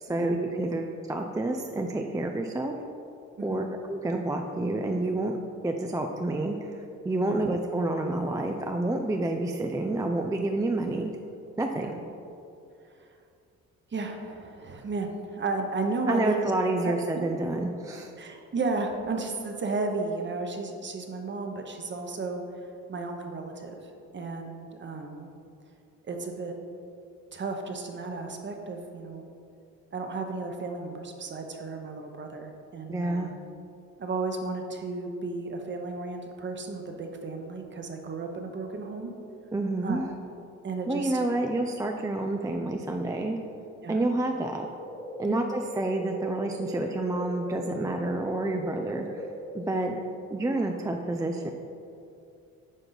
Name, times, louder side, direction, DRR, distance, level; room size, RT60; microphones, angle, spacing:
voice 1, 0.0-2.7 3.4-5.4 5.6-11.1 11.6-11.9 16.1-18.1 32.9-33.3 39.5-40.1 40.9-43.4 43.9-44.7 45.2-49.3 49.5-50.0 50.3-51.5, right 2 dB, 10° right, 3 dB, 0.4 m, -29 dB
voice 2, 13.9-16.4 16.8-16.9 18.2-22.4 22.9-23.8 24.1-25.3 26.1-26.6 27.3-29.3 29.9-33.3 34.0-39.1 39.8-40.0 40.6-41.2 43.8-44.0 45.2-45.4, right 3 dB, 40° right, 3 dB, 1.0 m, -33 dB
sound 1, 44.7-49.7, equal, 15° left, 1.4 m, -40 dB
9.2 x 5.2 x 4.0 m, 2.6 s
cardioid pair, 90°, 30 cm